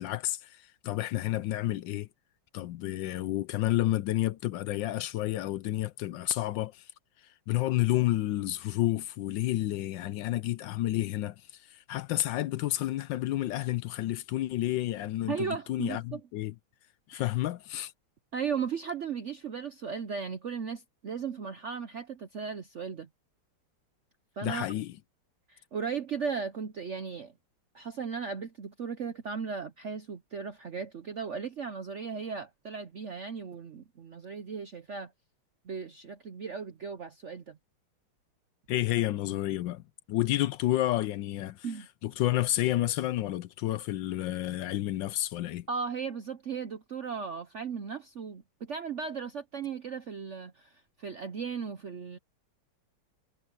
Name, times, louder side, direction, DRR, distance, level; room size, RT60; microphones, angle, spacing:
voice 1, 0.0-2.1 2.5-6.9 7.5-16.5 17.1-17.9 24.4-24.9 38.7-41.7 42.0-45.7, left 15 dB, 75° left, 1.1 m, -30 dB
voice 2, 15.3-16.2 17.1-17.3 18.3-23.1 24.4-24.7 25.5-27.3 27.7-35.1 35.6-37.6 41.6-41.9 45.7-52.2, right 6 dB, 75° right, 0.6 m, -36 dB
omnidirectional pair, 2.3 m